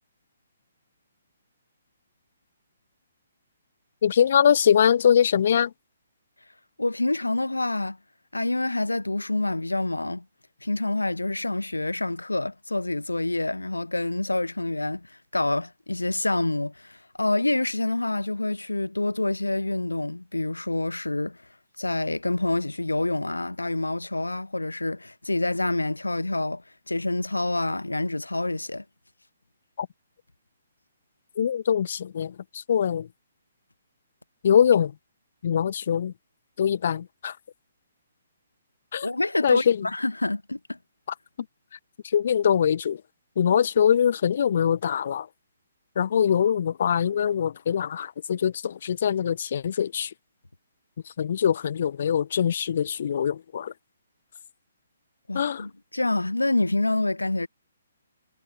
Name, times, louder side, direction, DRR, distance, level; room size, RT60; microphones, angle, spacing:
voice 1, 4.0-5.7 29.8-29.9 31.3-33.1 34.4-34.9 35.4-36.1 36.6-37.4 38.9-39.1 39.4-39.9 42.0-43.0 43.3-45.3 45.9-50.1 51.0-53.7 55.3-55.7, left 8 dB, 50° left, 1.5 m, -23 dB
voice 2, 6.8-8.0 8.3-10.2 10.6-21.4 21.8-28.8 39.0-40.8 55.3-57.5, left 2 dB, 80° left, 1.1 m, -27 dB
figure-of-eight pair, 130°, 0 cm